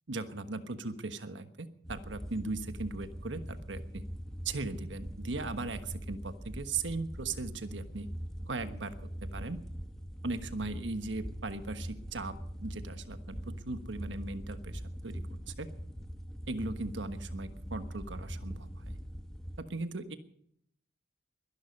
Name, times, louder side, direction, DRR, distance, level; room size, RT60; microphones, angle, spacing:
voice 1, 0.1-4.0 4.4-8.1 8.5-9.6 10.2-12.4 12.6-15.7 16.5-19.0 19.6-20.2, right 3 dB, 80° right, 10 dB, 1.3 m, -38 dB
sound 1, 1.8-19.6, equal, 5° left, 1.3 m, -42 dB
22.5 x 11.5 x 5.4 m, 0.70 s
head